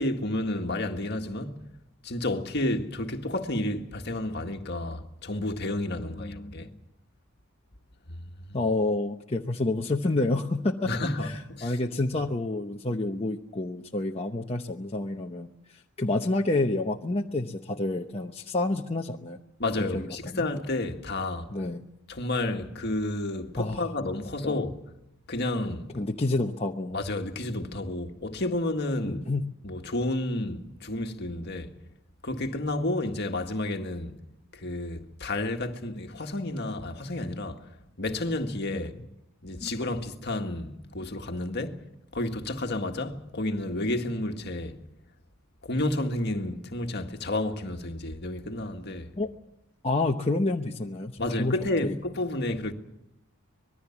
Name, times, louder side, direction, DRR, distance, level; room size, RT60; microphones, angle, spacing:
voice 1, 0.0-1.5 2.0-6.7 8.1-8.3 10.8-11.7 19.6-21.5 22.1-24.8 25.3-25.9 26.9-29.3 29.6-31.7 32.2-34.2 34.5-37.7 38.0-38.9 39.4-41.8 42.1-44.8 45.6-49.1 51.2-52.7, left 1 dB, 50° left, 1.8 m, -31 dB
voice 2, 6.0-6.8 8.5-10.9 11.2-19.4 19.8-20.5 21.5-21.8 23.6-23.8 24.4-24.6 25.9-27.0 29.1-29.5 38.7-38.9 39.6-39.7 49.2-49.3 49.8-51.1 51.4-51.6 51.8-51.9, left 2 dB, 30° left, 0.9 m, -29 dB
25.5 x 20.5 x 7.2 m
head